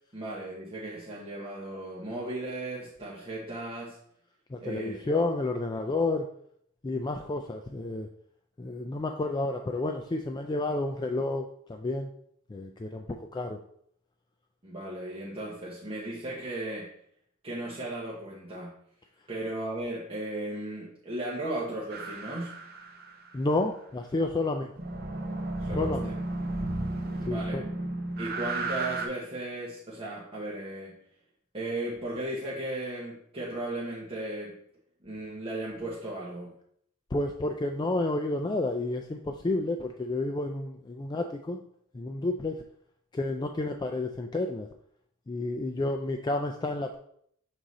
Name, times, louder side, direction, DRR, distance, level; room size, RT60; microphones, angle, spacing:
voice 1, 0.1-4.0 4.6-5.0 14.6-16.9 17.4-18.7 19.3-22.5 25.6-26.2 27.2-27.7 28.2-30.9 31.5-34.6 35.0-36.5, right 1 dB, 30° right, -6 dB, 1.1 m, -36 dB
voice 2, 4.5-6.3 6.8-8.1 8.6-12.1 12.5-13.6 23.3-24.7 25.7-26.1 27.3-27.6 37.1-41.6 41.9-42.6 43.1-44.7 45.3-47.0, left 2 dB, 20° left, 4 dB, 0.3 m, -30 dB
sound 1, 21.9-23.3 24.8-29.1, right 2 dB, 50° right, 0.8 m, -33 dB
6.2 x 3.8 x 4.1 m, 0.67 s
head